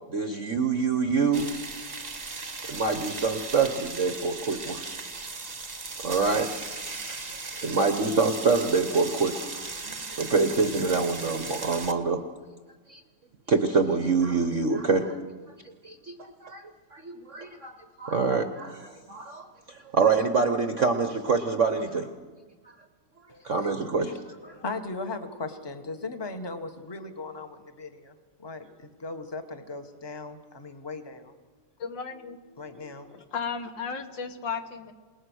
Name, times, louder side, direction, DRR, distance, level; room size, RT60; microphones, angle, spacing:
voice 1, 0.1-1.5 2.7-4.9 6.0-6.6 7.1-7.2 7.6-9.5 9.8-12.2 12.9-13.0 13.5-15.2 15.8-16.6 16.9-22.1 23.4-24.5, right 4 dB, 50° right, 8 dB, 1.0 m, -26 dB
sound 1, 1.3-11.9, right 3 dB, 25° right, 1.2 m, -37 dB
voice 2, 23.3-23.7 24.1-31.3 32.6-33.2, left 3 dB, 15° left, 7 dB, 1.1 m, -38 dB
voice 3, 31.8-32.4 33.1-34.9, left 6 dB, 65° left, 7 dB, 1.9 m, -34 dB
28.0 x 19.0 x 6.4 m, 1.4 s
omnidirectional pair, 2.3 m